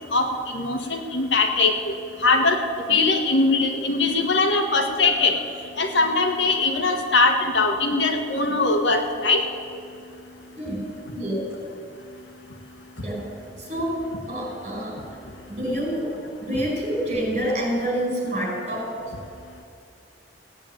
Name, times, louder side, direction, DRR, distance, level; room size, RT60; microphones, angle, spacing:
voice 1, 0.5-1.7 2.2-2.6 2.9-5.4 5.8-9.4, left 3 dB, 80° left, 4 dB, 1.6 m, -21 dB
voice 2, 13.0-13.3 13.6-15.0 15.5-16.1 16.4-19.0, right 1 dB, 40° right, -2 dB, 5.3 m, -27 dB
17.0 x 8.8 x 9.0 m, 2.4 s
head